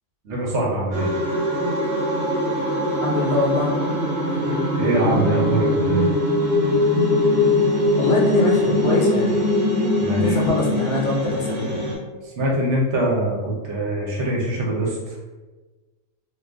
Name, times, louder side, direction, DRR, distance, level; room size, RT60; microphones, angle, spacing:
voice 1, 0.2-1.1 4.8-6.1 10.0-10.4 12.2-15.4, right 1 dB, 60° right, -4 dB, 0.9 m, -23 dB
sound 1, 0.9-11.9, left 1 dB, 35° right, 0.7 m, -21 dB
voice 2, 3.0-3.7 4.4-4.6 8.0-9.4 10.2-11.9, left 2 dB, 70° left, -2 dB, 1.0 m, -24 dB
2.4 x 2.4 x 3.4 m, 1.3 s
omnidirectional pair, 1.4 m